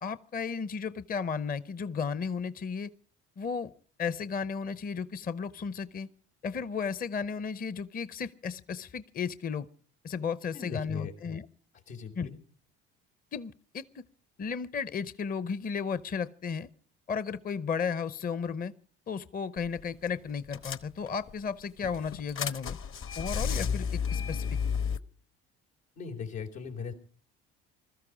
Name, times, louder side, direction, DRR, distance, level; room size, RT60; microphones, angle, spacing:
voice 1, 0.0-2.9 3.4-3.7 4.0-6.1 6.4-9.7 10.0-11.5 12.2-12.3 13.3-14.0 14.4-16.7 17.1-18.7 19.1-22.8 23.1-24.5, left 6 dB, 30° left, 16 dB, 0.7 m, -34 dB
voice 2, 10.5-11.1 11.9-12.4 26.0-26.9, left 6 dB, 85° left, 0 dB, 3.5 m, -38 dB
sound 1, 19.6-19.8 20.1-20.2 20.5-21.3 21.8-25.0, left 6 dB, 45° left, 1.0 m, -32 dB
20.5 x 13.5 x 5.0 m, 0.43 s
hypercardioid pair, 65°, 29 cm